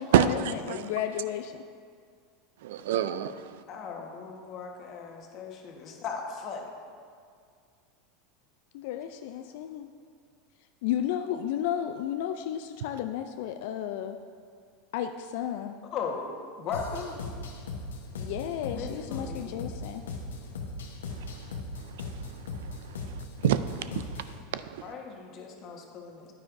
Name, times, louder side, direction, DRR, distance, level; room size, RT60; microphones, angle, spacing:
voice 1, 0.0-1.7 5.4-5.5 8.7-9.9 10.8-14.2 14.9-15.8 18.2-20.0, left 10 dB, 70° left, 7 dB, 0.3 m, -33 dB
voice 2, 2.6-3.6 23.4-24.0 24.5-24.9, right 11 dB, 75° right, 13 dB, 0.3 m, -26 dB
voice 3, 3.7-6.7 15.9-16.2 16.6-17.2 18.7-19.6 24.8-26.3, left 5 dB, 45° left, 1 dB, 1.3 m, -37 dB
sound 1, 16.7-24.4, left 2 dB, 90° left, 1.0 m, -38 dB
9.8 x 9.2 x 2.6 m, 2.1 s
hypercardioid pair, 95°, 0 cm